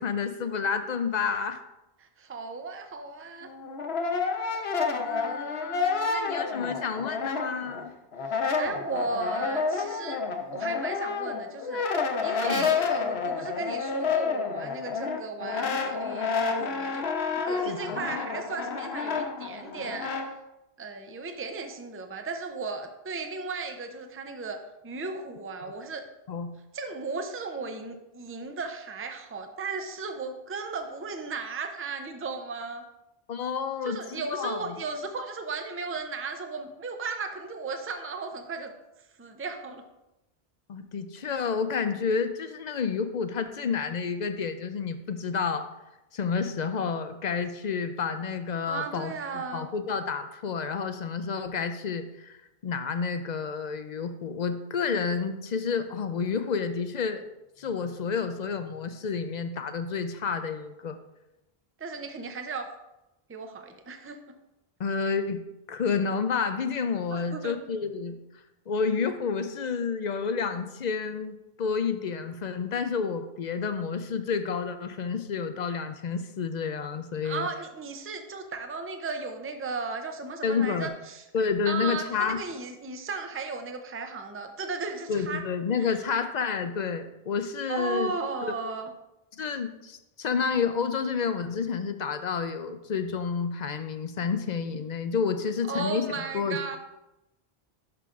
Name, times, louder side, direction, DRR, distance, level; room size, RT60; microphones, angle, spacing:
voice 1, 0.0-1.6 4.3-4.6 5.0-7.9 12.4-12.7 17.7-18.0 25.6-25.7 26.3-26.5 33.3-34.8 40.7-45.7 46.1-57.2 57.6-61.0 64.8-65.4 65.7-68.2 68.7-77.5 80.4-80.9 81.3-82.4 85.1-88.1 88.4-88.5 89.3-96.8, left 5 dB, 55° left, 9 dB, 0.5 m, -30 dB
voice 2, 2.0-3.5 8.2-10.2 10.5-11.9 12.2-17.1 17.4-20.1 20.8-26.0 26.7-32.8 33.8-38.7 39.0-39.8 48.7-49.7 61.8-62.7 63.3-64.2 67.1-67.6 77.2-81.3 81.7-85.4 85.8-86.0 87.7-88.9 95.7-96.8, right 4 dB, 20° right, 6 dB, 0.4 m, -35 dB
Brass instrument, 3.4-7.8 8.1-20.3, left 5 dB, 85° left, 1.0 m, -29 dB
11.0 x 5.7 x 2.5 m, 0.94 s
omnidirectional pair, 1.0 m